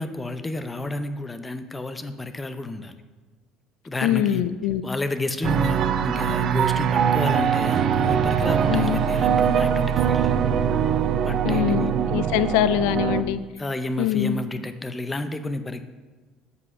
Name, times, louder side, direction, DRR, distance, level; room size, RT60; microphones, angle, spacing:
voice 1, 0.0-3.0 3.8-4.4 4.8-10.4 11.2-11.9 13.6-15.8, left 2 dB, 15° left, 9 dB, 0.6 m, -30 dB
voice 2, 4.0-4.8 5.6-5.7 8.7-9.0 11.4-13.4 14.0-14.4, left 11 dB, 85° left, 14 dB, 0.4 m, -23 dB
sound 1, 5.4-13.2, right 8 dB, 55° right, 0.5 m, -22 dB
8.0 x 5.6 x 5.4 m, 1.3 s
supercardioid pair, 105°, 0 cm